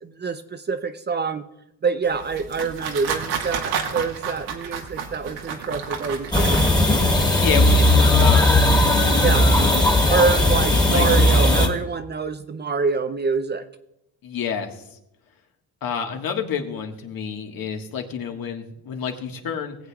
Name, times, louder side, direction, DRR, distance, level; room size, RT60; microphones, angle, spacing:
voice 1, 0.0-1.4 1.8-6.6 9.2-9.5 10.1-13.6, right 5 dB, 30° right, 10 dB, 0.5 m, -26 dB
sound 1, 2.1-7.0, right 6 dB, 85° right, 1.5 m, -31 dB
sound 2, 6.3-11.7, left 1 dB, 10° left, 1.7 m, -17 dB
voice 2, 7.4-8.6 10.7-11.0 14.2-14.7 15.8-19.8, left 7 dB, 65° left, 3 dB, 1.6 m, -28 dB
19.0 x 8.2 x 2.3 m, 0.85 s
cardioid pair, 110°, 38 cm